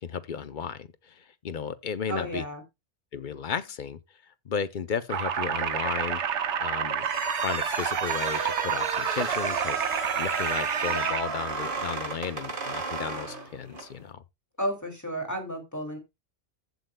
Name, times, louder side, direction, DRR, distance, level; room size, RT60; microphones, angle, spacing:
voice 1, 0.0-2.4 3.1-4.0 4.4-7.0 7.4-9.8 10.2-14.2, left 6 dB, 50° left, 0.8 m, -34 dB
voice 2, 2.1-2.6 14.6-16.0, right 1 dB, 15° left, 2.5 m, -32 dB
sound 1, 5.1-11.2, right 8 dB, 70° right, 1.1 m, -29 dB
sound 2, 7.0-13.9, right 4 dB, 45° right, 1.8 m, -33 dB
14.5 x 8.0 x 2.2 m
omnidirectional pair, 1.2 m